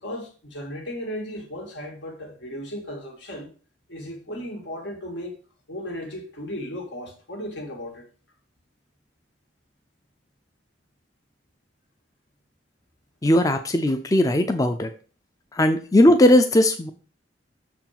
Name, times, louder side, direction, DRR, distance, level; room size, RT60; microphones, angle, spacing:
voice 1, 0.0-3.5 3.9-5.4 5.7-8.0, equal, 80° left, 2.2 m, -35 dB
voice 2, 13.2-14.9 15.6-16.9, left 1 dB, 20° left, 0.5 m, -18 dB
6.4 x 4.6 x 5.8 m
head